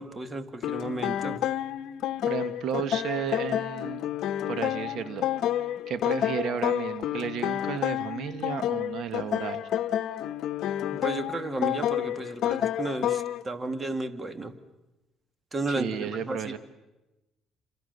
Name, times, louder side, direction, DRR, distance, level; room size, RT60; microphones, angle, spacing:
voice 1, 0.0-1.4 10.9-14.5 15.5-16.5, right 2 dB, 20° right, 9 dB, 2.0 m, -33 dB
sound 1, 0.6-13.4, left 11 dB, 70° left, 0.9 m, -29 dB
voice 2, 2.2-4.1 4.5-5.3 5.9-9.6 15.8-16.6, right 7 dB, 65° right, 11 dB, 1.5 m, -33 dB
29.5 x 27.0 x 6.8 m, 1.0 s
cardioid pair, 110°, 0 cm